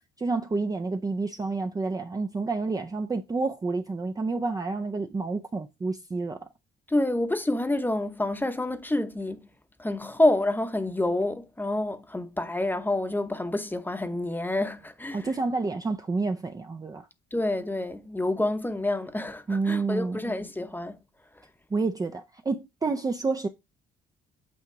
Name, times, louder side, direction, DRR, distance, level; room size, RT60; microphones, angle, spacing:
voice 1, 0.2-6.5 15.1-17.1 19.5-20.2 21.7-23.5, right 3 dB, 20° right, 0.4 m, -29 dB
voice 2, 6.9-9.5 9.8-15.3 17.3-21.0, left 1 dB, 10° left, 0.8 m, -28 dB
8.4 x 2.9 x 4.7 m
cardioid pair, 90°, 20 cm